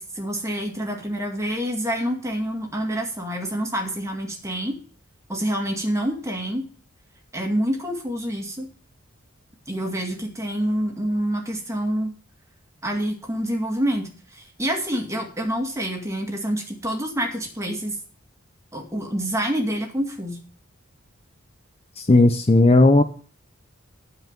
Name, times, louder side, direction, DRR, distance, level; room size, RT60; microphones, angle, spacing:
voice 1, 0.0-4.8 5.3-6.7 7.3-8.7 9.7-12.1 12.8-18.0 18.7-20.4, equal, 15° right, 2 dB, 2.1 m, -27 dB
voice 2, 22.0-23.0, left 2 dB, 30° left, 8 dB, 0.6 m, -15 dB
12.0 x 4.9 x 7.4 m, 0.41 s
head